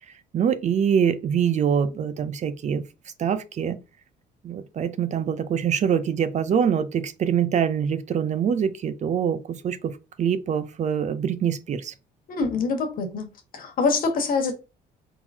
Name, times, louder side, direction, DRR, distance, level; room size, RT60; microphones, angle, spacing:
voice 1, 0.3-2.8 3.2-3.8 4.4-9.9 10.2-11.9, right 8 dB, 45° right, 0.6 m, -24 dB
voice 2, 12.3-13.3 13.5-14.5, left 4 dB, 55° left, 1.6 m, -24 dB
4.4 x 3.9 x 2.8 m
cardioid pair, 110°, 17 cm